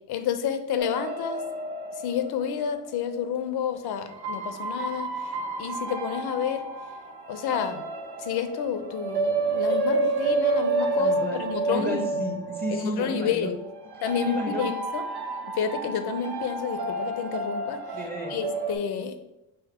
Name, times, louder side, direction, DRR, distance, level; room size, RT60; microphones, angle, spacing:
voice 1, 0.1-1.4 2.0-6.7 7.3-7.8 8.2-12.0 12.7-13.6 14.0-15.0 15.5-17.8 18.3-19.2, left 8 dB, 85° left, 10 dB, 0.6 m, -30 dB
sound 1, 0.8-3.3 4.1-18.8, right 3 dB, 75° right, 0.7 m, -30 dB
voice 2, 11.0-11.4 11.7-13.5 14.3-14.6 17.9-18.4, right 1 dB, 25° right, 0 dB, 0.6 m, -32 dB
5.0 x 2.1 x 4.6 m, 0.91 s
cardioid pair, 135°, 38 cm